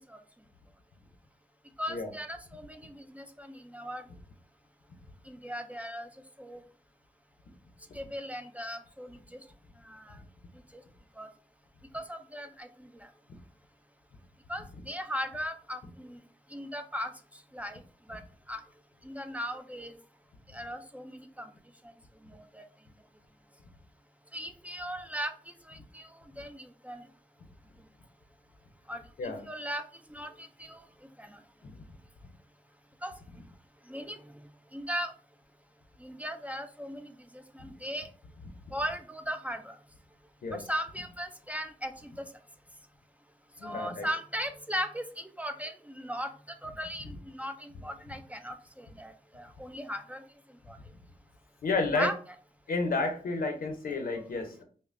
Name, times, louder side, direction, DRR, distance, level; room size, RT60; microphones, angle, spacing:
voice 1, 1.8-4.0 5.3-6.1 6.4-6.6 7.9-9.2 9.8-10.2 10.7-10.8 11.2-11.3 11.9-12.9 14.5-16.2 16.5-17.1 17.5-17.8 18.1-18.2 18.5-18.6 19.0-19.9 20.5-21.5 22.3-22.6 24.3-25.3 25.7-26.1 26.4-27.1 28.9-29.8 30.1-30.8 31.2-31.4 33.0-33.1 33.9-34.3 34.7-35.1 36.0-38.1 38.7-39.8 40.5-42.3 43.6-46.3 46.6-50.2 50.7-50.8 51.9-52.1 54.0-54.3, equal, 10° right, 7 dB, 0.3 m, -38 dB
voice 2, 43.6-44.1 51.6-52.1 52.7-54.6, left 3 dB, 80° left, 4 dB, 0.8 m, -31 dB
5.4 x 2.1 x 2.5 m, 0.43 s
wide cardioid pair, 115°, 15 cm